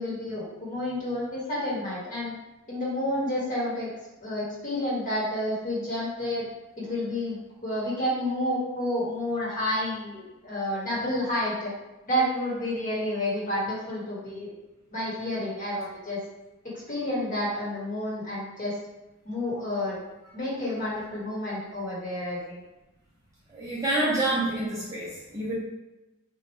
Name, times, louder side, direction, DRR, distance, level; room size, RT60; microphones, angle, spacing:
voice 1, 0.0-2.3 2.7-3.9 4.2-6.4 6.8-7.4 7.6-11.7 12.1-14.5 14.9-16.2 16.6-18.8 19.2-20.0 20.3-22.6, left 1 dB, 40° left, -6 dB, 1.3 m, -30 dB
voice 2, 23.5-25.5, right 1 dB, 15° right, -8 dB, 0.7 m, -27 dB
3.1 x 2.4 x 4.3 m, 1.0 s
head